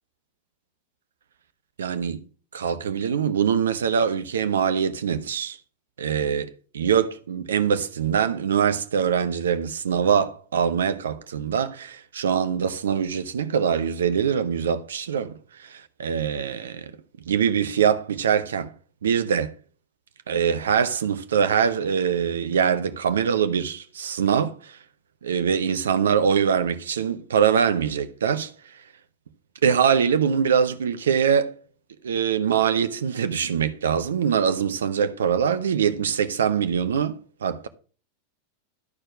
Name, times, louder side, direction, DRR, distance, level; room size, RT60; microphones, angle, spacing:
voice 1, 1.8-2.2 2.5-5.6 6.0-15.3 15.6-16.9 17.3-18.7 19.0-19.5 20.3-24.8 25.2-28.5 29.6-31.5 32.0-37.7, right 7 dB, 65° right, 0.8 m, -23 dB
12.0 x 4.4 x 6.0 m
figure-of-eight pair, 90°, 0 cm